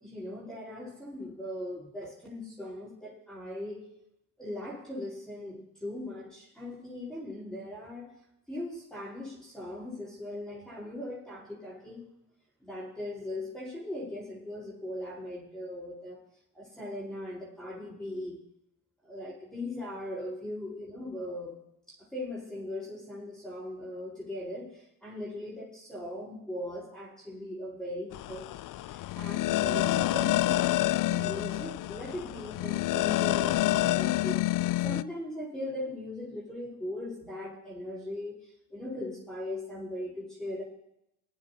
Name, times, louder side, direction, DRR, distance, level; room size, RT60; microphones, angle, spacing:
voice 1, 0.0-3.9 4.4-8.1 8.5-12.1 12.6-16.2 16.5-18.4 19.0-21.6 21.9-28.5 28.7-34.4 34.8-38.4 38.7-40.6, left 1 dB, ahead, -7 dB, 4.7 m, -39 dB
sound 1, 28.1-35.0, left 15 dB, 50° left, 0.5 m, -28 dB
20.5 x 9.4 x 2.9 m, 0.83 s
supercardioid pair, 75°, 41 cm